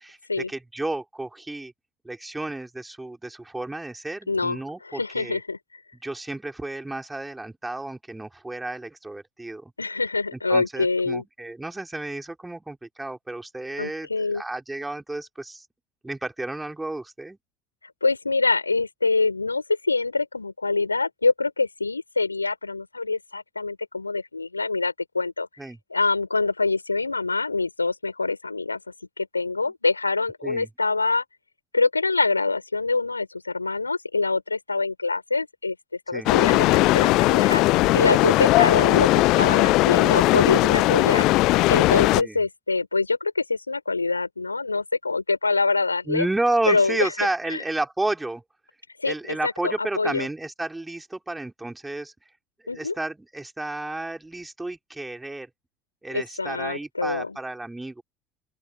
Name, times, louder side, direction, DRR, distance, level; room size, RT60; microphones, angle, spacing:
voice 1, 0.0-1.7 2.0-5.4 6.0-9.7 10.3-15.7 16.0-17.4 25.6-25.8 30.4-30.7 36.1-36.3 40.5-40.8 42.1-42.4 46.1-48.4 49.0-52.1 52.7-55.5 56.0-58.0, right 2 dB, 10° right, 4.1 m, -32 dB
voice 2, 4.3-5.6 9.8-11.2 13.8-14.4 18.0-25.5 25.9-28.8 29.2-31.2 31.7-37.6 37.9-41.3 41.7-46.3 46.7-47.1 47.5-47.6 49.0-50.3 52.7-52.9 56.1-57.4, left 3 dB, 85° left, 4.9 m, -25 dB
sound 1, 36.3-42.2, left 20 dB, 55° left, 0.5 m, -18 dB
open air
figure-of-eight pair, 65°, 0 cm